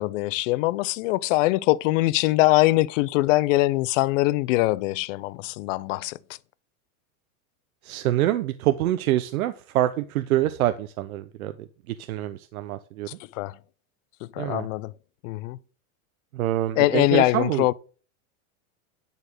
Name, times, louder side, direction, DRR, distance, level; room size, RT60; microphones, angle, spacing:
voice 1, 0.0-6.1 13.3-13.5 14.4-14.9 15.2-15.6 16.8-17.7, left 19 dB, 65° left, 0.7 m, -22 dB
voice 2, 7.8-13.1 14.4-14.7 16.3-17.7, right 13 dB, 90° right, 0.8 m, -26 dB
10.5 x 4.3 x 6.3 m
supercardioid pair, 130°, 41 cm